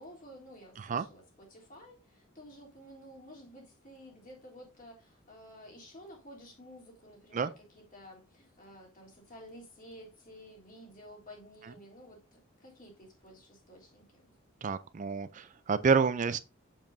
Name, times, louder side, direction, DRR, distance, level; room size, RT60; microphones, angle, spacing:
voice 1, 0.0-14.3, equal, 40° left, 3.3 m, -52 dB
voice 2, 14.6-16.4, right 5 dB, 35° right, 0.4 m, -28 dB
7.5 x 7.2 x 2.6 m
head